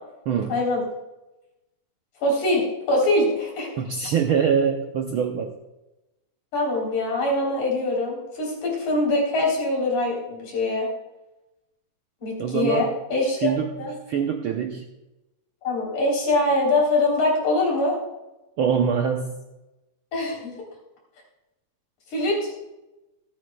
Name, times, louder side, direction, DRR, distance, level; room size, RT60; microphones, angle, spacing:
voice 1, 0.5-0.8 2.2-3.7 6.5-10.9 12.2-13.5 13.8-13.9 15.6-18.0 20.1-20.5 22.1-22.5, left 2 dB, 85° left, -3 dB, 5.1 m, -23 dB
voice 2, 3.8-5.5 12.4-12.9 13.4-13.7 14.1-14.8 18.6-19.4, right 7 dB, 75° right, 4 dB, 1.2 m, -24 dB
26.5 x 9.3 x 2.3 m, 1.0 s
omnidirectional pair, 3.3 m